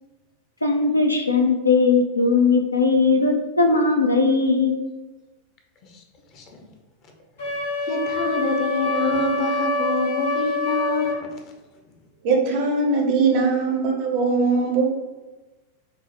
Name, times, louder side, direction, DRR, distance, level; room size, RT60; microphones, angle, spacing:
voice 1, 0.6-4.8, left 4 dB, 85° left, 3 dB, 0.4 m, -19 dB
voice 2, 6.3-6.6 7.4-11.4, left 3 dB, 40° left, 2 dB, 0.6 m, -27 dB
Wind instrument woodwind instrument, 7.4-11.2, left 2 dB, 60° left, 1.0 m, -25 dB
voice 3, 12.2-14.9, right 4 dB, 45° right, 1 dB, 0.6 m, -20 dB
4.4 x 2.0 x 2.7 m, 1.1 s
figure-of-eight pair, 90°, 0 cm